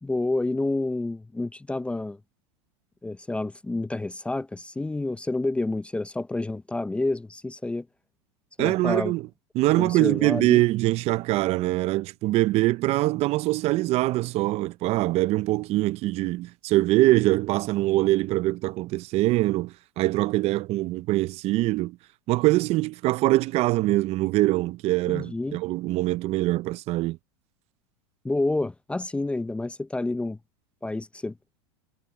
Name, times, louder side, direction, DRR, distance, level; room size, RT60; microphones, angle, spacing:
voice 1, 0.0-2.2 3.0-7.9 8.6-9.1 9.8-10.6 25.1-25.6 28.2-30.4 30.8-31.3, left 2 dB, 10° left, 0.5 m, -29 dB
voice 2, 8.6-9.2 9.5-22.0 22.3-27.2, right 18 dB, 45° right, 0.6 m, -23 dB
hypercardioid pair, 110°, 15 cm